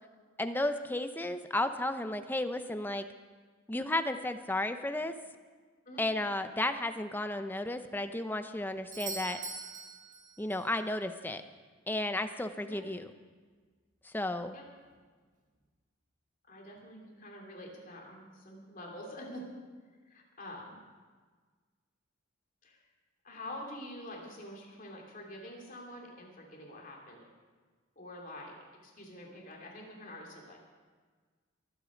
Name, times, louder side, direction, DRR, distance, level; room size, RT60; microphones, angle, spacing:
voice 1, 0.4-3.1 3.7-5.2 6.0-9.4 10.4-11.4 11.9-13.1 14.0-14.6, left 1 dB, 10° left, 9 dB, 0.6 m, -33 dB
Doorbell, 8.9-10.8 14.8-14.9, right 4 dB, 35° right, 2.1 m, -42 dB
voice 2, 16.4-19.5 20.0-20.8 22.6-22.8 23.2-27.2 28.0-28.5 28.8-30.6, left 1 dB, 40° left, -1 dB, 2.8 m, -46 dB
23.5 x 8.4 x 5.0 m, 1.5 s
head